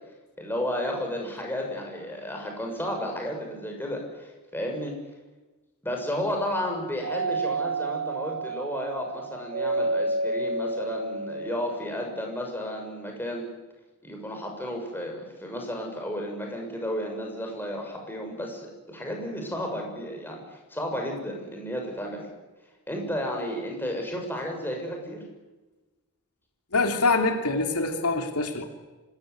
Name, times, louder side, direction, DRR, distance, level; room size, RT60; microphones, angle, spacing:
voice 1, 0.4-4.9 5.8-13.4 14.0-22.3 22.9-25.2, equal, 10° left, 1 dB, 6.9 m, -32 dB
Doorbell, 7.0-11.9, right 2 dB, 50° right, 1.8 m, -30 dB
voice 2, 26.7-28.6, left 3 dB, 85° left, 4 dB, 3.3 m, -24 dB
25.5 x 20.0 x 9.7 m, 1.2 s
head